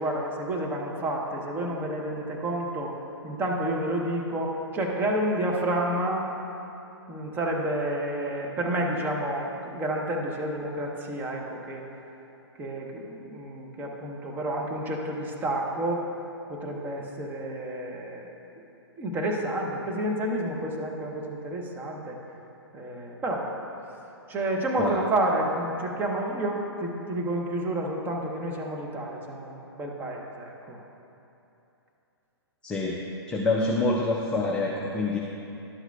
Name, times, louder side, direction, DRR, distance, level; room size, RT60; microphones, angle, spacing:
voice 1, 0.0-2.9 3.2-6.3 7.1-11.8 12.6-16.0 16.5-18.3 19.0-22.2 22.7-23.5 23.9-24.0 24.3-30.8, right 1 dB, 15° right, -1 dB, 0.8 m, -30 dB
voice 2, 32.6-35.2, left 2 dB, 5° left, -2 dB, 0.3 m, -26 dB
11.5 x 8.0 x 2.3 m, 2.9 s
figure-of-eight pair, 120°, 14 cm